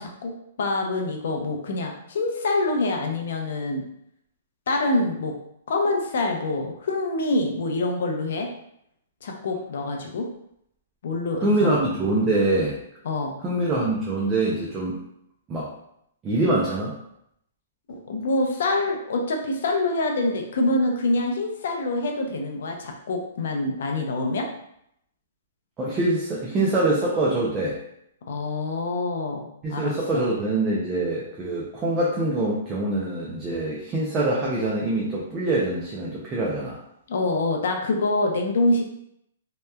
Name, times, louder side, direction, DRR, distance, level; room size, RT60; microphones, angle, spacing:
voice 1, 0.0-3.8 4.7-5.3 5.7-8.5 9.2-10.3 11.0-11.8 13.0-13.3 18.1-24.5 28.2-30.2 37.1-38.8, left 2 dB, 65° left, 2 dB, 0.5 m, -25 dB
voice 2, 11.4-12.8 13.4-15.0 15.5-15.7 16.2-17.0 25.8-27.8 29.6-36.8, right 2 dB, 15° right, -5 dB, 0.4 m, -24 dB
2.8 x 2.1 x 2.2 m, 0.76 s
hypercardioid pair, 160°, 0 cm